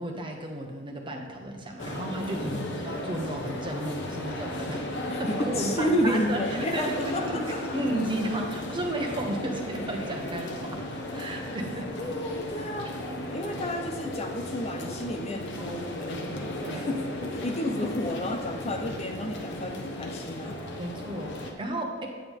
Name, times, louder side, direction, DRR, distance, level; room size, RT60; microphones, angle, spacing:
voice 1, 0.0-7.4 7.7-10.8 11.1-11.9 15.6-15.8 16.6-16.9 18.9-19.0 20.8-22.1, right 1 dB, 25° right, 1 dB, 1.2 m, -33 dB
sound 1, 1.8-21.5, left 1 dB, 60° left, 1.2 m, -35 dB
voice 2, 5.1-7.6 12.0-12.9 13.3-20.6, left 1 dB, 30° left, 4 dB, 0.7 m, -31 dB
9.4 x 8.8 x 3.6 m, 1.5 s
head